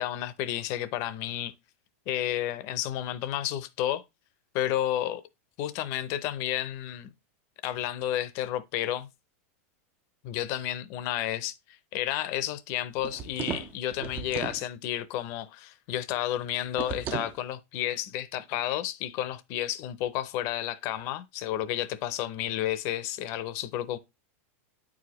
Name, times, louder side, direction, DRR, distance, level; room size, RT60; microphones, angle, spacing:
voice 1, 0.0-1.5 2.1-4.0 4.5-5.2 5.6-7.1 7.6-9.1 10.2-24.0, left 12 dB, 35° left, 0.6 m, -31 dB
sound 1, 13.0-14.6 16.7-17.4, right 9 dB, 20° right, 0.4 m, -36 dB
8.8 x 4.9 x 3.0 m
supercardioid pair, 165°, 8 cm